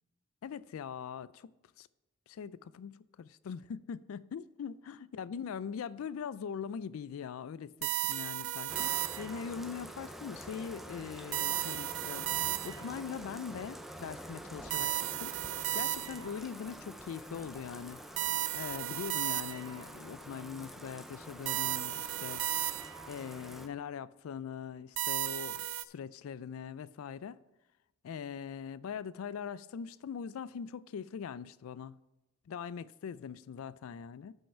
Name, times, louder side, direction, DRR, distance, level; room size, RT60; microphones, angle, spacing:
voice 1, 0.4-1.5 1.8-1.9 2.3-15.4 15.7-18.0 18.5-22.4 23.1-27.4 28.0-32.0 32.5-34.3, left 7 dB, 85° left, 0.3 m, -42 dB
sound 1, 7.8-9.5 11.3-13.0 14.7-16.4 18.2-19.8 21.5-23.1 25.0-25.8, right 15 dB, 70° right, 0.4 m, -34 dB
Bathtub (filling or washing), 8.7-23.7, right 1 dB, ahead, 0.5 m, -47 dB
8.7 x 5.5 x 5.6 m
head